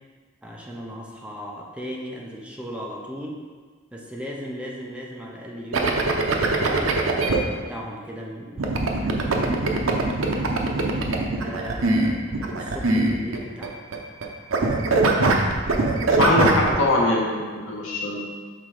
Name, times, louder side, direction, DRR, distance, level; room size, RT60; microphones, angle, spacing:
voice 1, 0.4-3.4 3.9-7.4 7.7-10.0 11.1-13.8, equal, 5° right, -2 dB, 0.6 m, -37 dB
sound 1, 5.7-7.4 8.6-14.3 14.5-16.7, right 2 dB, 80° right, 0.7 m, -22 dB
voice 2, 16.2-18.2, left 1 dB, 75° left, -2 dB, 1.2 m, -22 dB
6.0 x 3.6 x 4.8 m, 1.5 s
head